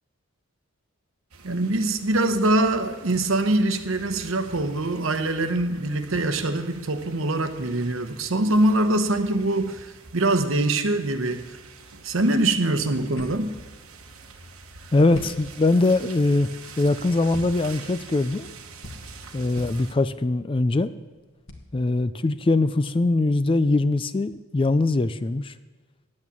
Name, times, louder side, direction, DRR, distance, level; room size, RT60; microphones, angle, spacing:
sound 1, 1.3-20.0, right 4 dB, 85° right, 1.2 m, -45 dB
voice 1, 1.4-11.6 12.0-13.6, right 2 dB, 70° right, 1.0 m, -23 dB
sound 2, 13.1-23.1, left 1 dB, 65° left, 1.7 m, -45 dB
voice 2, 14.9-16.5 16.8-18.5 19.3-20.9 21.7-25.5, left 2 dB, 25° left, 0.3 m, -22 dB
10.5 x 8.6 x 8.3 m
head